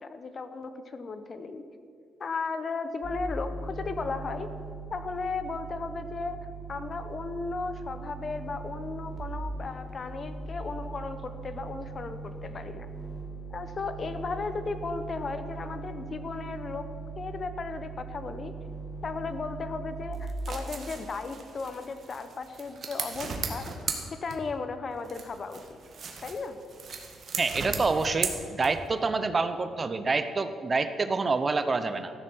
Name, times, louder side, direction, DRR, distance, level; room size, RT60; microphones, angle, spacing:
voice 1, 0.0-1.6 2.2-4.5 4.9-6.4 6.7-12.9 13.5-18.5 19.0-23.7 24.1-25.8 26.2-26.6, left 4 dB, 45° left, 10 dB, 0.9 m, -35 dB
sound 1, 3.0-9.2 9.5-20.1, right 3 dB, 25° left, 2.6 m, -40 dB
sound 2, 20.1-24.7 25.0-29.0, right 5 dB, 50° right, 1.8 m, -37 dB
voice 2, 27.4-32.1, right 4 dB, 30° right, 11 dB, 0.7 m, -27 dB
13.5 x 6.6 x 7.7 m, 2.3 s
cardioid pair, 90°, 0 cm